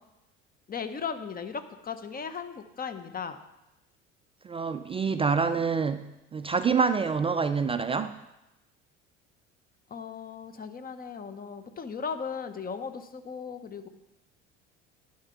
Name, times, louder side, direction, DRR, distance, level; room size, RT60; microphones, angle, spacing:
voice 1, 0.7-3.4 9.9-13.9, left 6 dB, 25° left, 10 dB, 0.9 m, -37 dB
voice 2, 4.4-6.0 6.3-8.1, right 5 dB, 15° right, 10 dB, 0.3 m, -26 dB
11.0 x 4.4 x 6.3 m, 0.94 s
hypercardioid pair, 65°, 37 cm